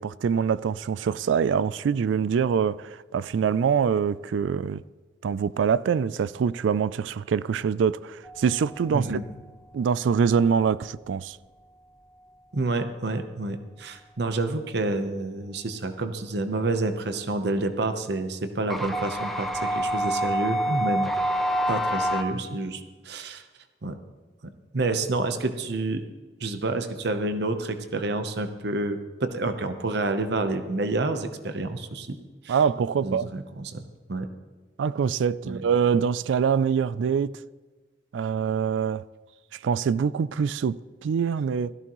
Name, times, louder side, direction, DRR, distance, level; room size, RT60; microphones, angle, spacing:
voice 1, 0.0-4.8 5.2-9.1 9.7-11.4 32.5-33.3 34.8-37.3 38.1-39.0 39.6-41.7, right 6 dB, 80° right, 0.3 m, -24 dB
sound 1, 8.3-9.1 18.7-22.2, equal, ahead, 0.9 m, -27 dB
voice 2, 8.9-9.2 12.5-21.1 21.7-23.4 23.8-24.0 24.7-26.0 26.4-32.2 32.4-32.6 33.0-33.8 34.1-34.3 35.4-35.6, right 2 dB, 60° right, 0.8 m, -29 dB
16.5 x 13.5 x 3.1 m
head